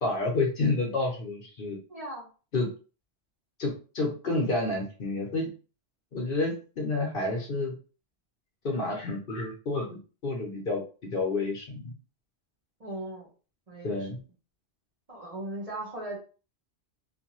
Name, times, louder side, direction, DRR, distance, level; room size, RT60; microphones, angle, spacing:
voice 1, 0.0-1.8 2.5-2.7 3.6-5.5 6.1-7.7 8.6-11.9 13.8-14.2, left 2 dB, 55° left, 1 dB, 0.9 m, -29 dB
voice 2, 1.9-2.3 12.8-13.3 13.7-14.0 15.1-16.2, right 1 dB, 35° right, -3 dB, 1.1 m, -37 dB
2.6 x 2.6 x 2.9 m, 0.36 s
omnidirectional pair, 1.1 m